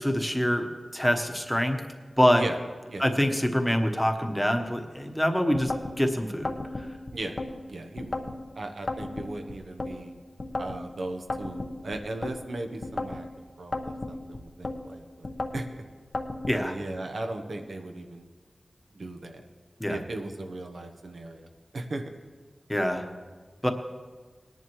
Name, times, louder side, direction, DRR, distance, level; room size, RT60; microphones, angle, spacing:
voice 1, 0.0-1.8 2.2-2.4 3.0-5.7 6.0-6.5 16.5-16.7 19.8-20.0 22.7-23.0 23.6-23.7, equal, 5° left, 4 dB, 1.1 m, -25 dB
sound 1, 5.5-6.0 6.4-7.5 8.0-8.4 8.9-9.9 10.4-10.8 11.3-12.4 12.8-13.2 13.7-14.8 15.2-15.7 16.1-16.6, left 2 dB, 55° left, 0.9 m, -33 dB
voice 2, 7.7-8.3 8.5-10.1 10.6-13.3 13.6-15.8 16.6-18.3 18.9-19.4 19.9-22.0, right 2 dB, 80° right, 4 dB, 1.0 m, -37 dB
19.5 x 10.5 x 3.1 m, 1.4 s
wide cardioid pair, 75°, 0 cm